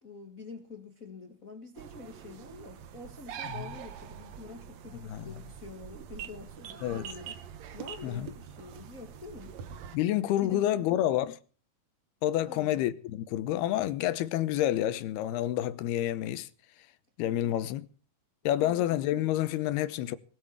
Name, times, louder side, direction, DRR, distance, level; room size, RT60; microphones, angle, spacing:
voice 1, 0.0-7.4 7.7-9.6 10.4-10.8 12.4-12.8 17.4-17.8 18.4-18.8, left 3 dB, 35° left, 1.3 m, -47 dB
sound 1, 1.8-10.0, right 8 dB, 70° right, 1.7 m, -44 dB
voice 2, 9.9-11.4 12.2-16.5 17.2-17.9 18.4-20.2, left 13 dB, 80° left, 2.9 m, -29 dB
20.5 x 8.5 x 7.1 m
omnidirectional pair, 4.6 m